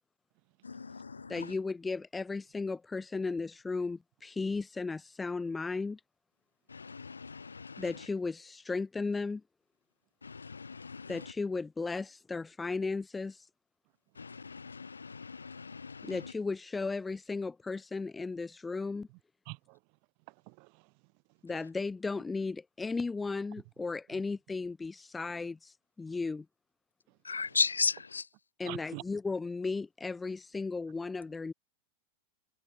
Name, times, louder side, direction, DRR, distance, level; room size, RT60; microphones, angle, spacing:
voice 1, 0.6-1.5 6.7-8.1 10.2-11.3 14.2-16.3 27.2-28.3, left 5 dB, 75° left, 2.5 m, -36 dB
voice 2, 1.3-6.0 7.8-9.4 11.1-13.4 16.0-19.1 21.4-26.5 28.6-31.5, left 4 dB, 10° left, 2.0 m, -35 dB
voice 3, 19.5-19.8 20.5-20.8 28.6-29.0, right 40 dB or more, 45° right, 5.9 m, -44 dB
figure-of-eight pair, 90°, 0 cm